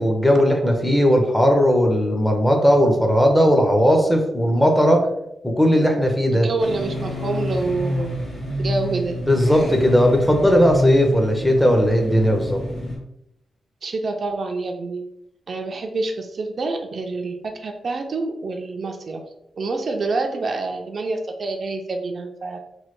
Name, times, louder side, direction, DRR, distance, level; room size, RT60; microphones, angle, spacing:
voice 1, 0.0-5.1 5.4-6.5 9.3-12.6, equal, 10° left, 3 dB, 0.5 m, -17 dB
voice 2, 6.3-8.3 8.6-9.2 13.8-15.1 15.5-22.6, right 3 dB, 50° right, 3 dB, 0.3 m, -27 dB
sound 1, 6.6-13.0, left 1 dB, 70° left, 1.2 m, -27 dB
3.1 x 2.2 x 3.0 m, 0.80 s
wide cardioid pair, 140°, 0 cm